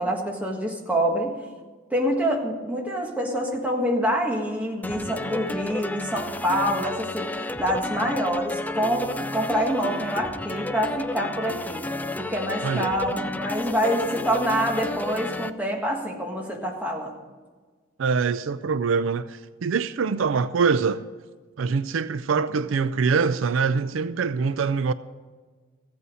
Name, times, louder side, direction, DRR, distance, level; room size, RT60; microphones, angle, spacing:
voice 1, 0.0-1.4 1.9-9.1 9.3-17.1, equal, 5° right, 1.6 m, -26 dB
sound 1, 4.8-15.5, left 2 dB, 10° left, 0.3 m, -32 dB
voice 2, 18.0-21.1 21.6-24.9, right 5 dB, 70° right, 0.4 m, -24 dB
15.0 x 8.2 x 6.3 m
head